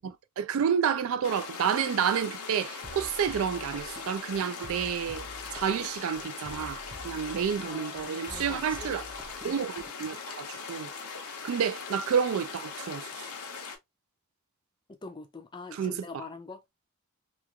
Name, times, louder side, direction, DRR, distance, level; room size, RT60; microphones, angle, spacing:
voice 1, 0.0-5.3 5.5-9.0 9.4-10.9 11.4-13.2 15.8-15.9, right 7 dB, 65° right, 0.3 m, -30 dB
sound 1, 1.2-13.8, left 5 dB, 85° left, 0.8 m, -40 dB
sound 2, 2.8-10.0, equal, 25° right, 0.6 m, -47 dB
voice 2, 7.6-8.9 14.9-16.6, left 3 dB, 20° left, 0.4 m, -44 dB
3.0 x 2.4 x 2.2 m
head